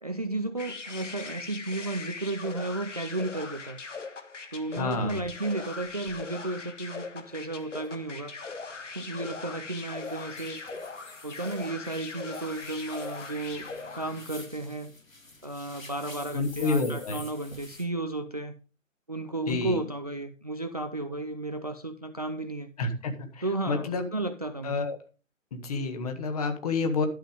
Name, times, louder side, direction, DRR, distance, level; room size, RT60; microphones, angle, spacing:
voice 1, 0.0-3.8 4.5-8.4 8.9-10.6 11.2-13.7 13.9-14.9 15.4-18.5 19.1-22.7 23.4-24.8, right 2 dB, 30° right, 11 dB, 0.4 m, -33 dB
sound 1, 0.6-14.4, left 4 dB, 65° left, 1.7 m, -40 dB
sound 2, 4.6-4.7 5.1-5.3 5.8-6.2 6.7-6.8 7.3-7.4 7.6-17.9, left 2 dB, 80° left, 2.7 m, -49 dB
voice 2, 4.8-5.2 9.4-9.6 16.3-17.2 19.5-19.8 22.8-24.1 24.6-25.0 25.5-27.1, left 4 dB, 30° left, 7 dB, 1.4 m, -29 dB
12.0 x 5.7 x 5.1 m, 0.33 s
figure-of-eight pair, 140°, 40 cm